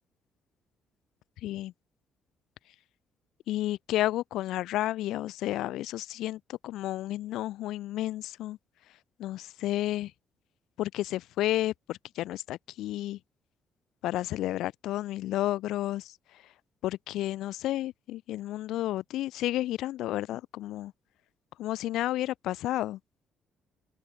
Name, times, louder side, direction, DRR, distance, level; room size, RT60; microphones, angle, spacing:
voice 1, 1.4-1.7 3.5-8.6 9.2-10.1 10.8-13.2 14.0-16.4 16.8-20.9 21.6-23.0, left 14 dB, 80° left, 1.5 m, -31 dB
open air
cardioid pair, 85°, 0 cm